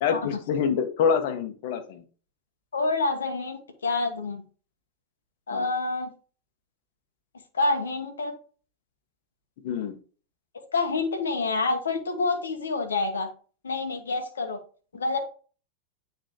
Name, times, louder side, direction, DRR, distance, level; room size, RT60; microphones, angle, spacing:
voice 1, 0.0-2.0 5.5-5.7 9.6-9.9, left 7 dB, 60° left, 6 dB, 1.4 m, -26 dB
voice 2, 2.7-4.4 5.5-6.1 7.5-8.3 10.7-13.3 13.6-14.6 14.9-15.2, left 3 dB, 85° left, 4 dB, 1.2 m, -27 dB
8.9 x 4.0 x 2.9 m, 0.38 s
hypercardioid pair, 100°, 0 cm